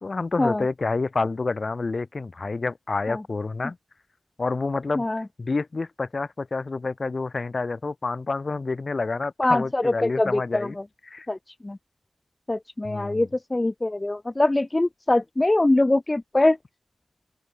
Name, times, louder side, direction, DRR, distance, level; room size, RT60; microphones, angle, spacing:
voice 1, 0.0-3.8 4.4-5.1 5.4-10.8 11.0-11.3 12.8-13.3, left 3 dB, 45° left, 3.2 m, -28 dB
voice 2, 9.4-9.9 10.2-10.7 11.3-11.4 11.7-11.8 12.5-16.6, left 2 dB, 25° left, 0.9 m, -22 dB
open air
cardioid pair, 45°, 0 cm